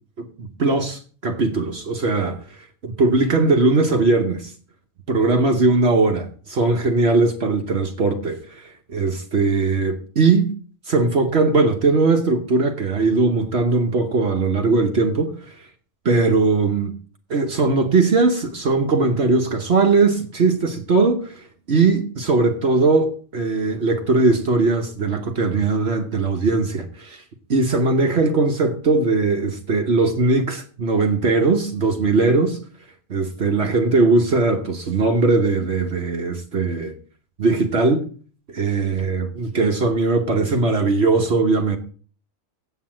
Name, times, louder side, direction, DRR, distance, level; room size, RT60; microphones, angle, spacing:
voice 1, 0.2-4.5 5.1-10.5 10.9-15.7 16.0-16.9 17.3-27.2 27.5-32.6 33.1-36.9 37.4-38.1 38.5-41.8, right 3 dB, 55° right, 1.3 m, -19 dB
8.0 x 7.8 x 7.4 m
omnidirectional pair, 1.4 m